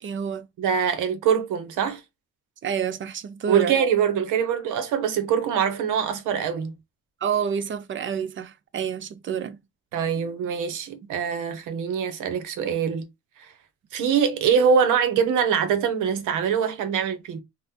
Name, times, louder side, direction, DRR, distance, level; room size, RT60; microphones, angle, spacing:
voice 1, 0.0-0.4 2.6-3.8 7.2-9.6, right 7 dB, 40° right, 0.5 m, -28 dB
voice 2, 0.6-2.0 3.5-6.7 9.9-13.1 13.4-13.5 13.9-17.4, right 7 dB, 85° right, 0.7 m, -23 dB
3.7 x 2.0 x 2.8 m
cardioid pair, 90°, 30 cm